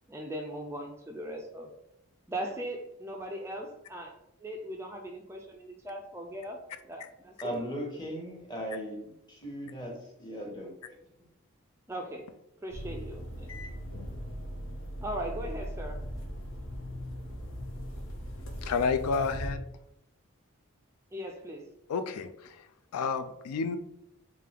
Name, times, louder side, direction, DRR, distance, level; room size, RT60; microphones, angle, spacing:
voice 1, 0.1-1.7 2.3-4.1 4.4-6.6 6.8-7.6 11.9-12.3 12.6-13.5 15.0-16.0 21.1-21.7, right 1 dB, 10° right, 2 dB, 0.3 m, -39 dB
voice 2, 7.4-10.9, equal, 20° left, -1 dB, 1.0 m, -38 dB
sound 1, 12.7-19.5, equal, 60° left, 0.7 m, -39 dB
voice 3, 18.6-19.6 21.9-22.7 22.9-23.8, left 5 dB, 90° left, 10 dB, 0.3 m, -30 dB
3.7 x 3.2 x 3.3 m, 0.81 s
head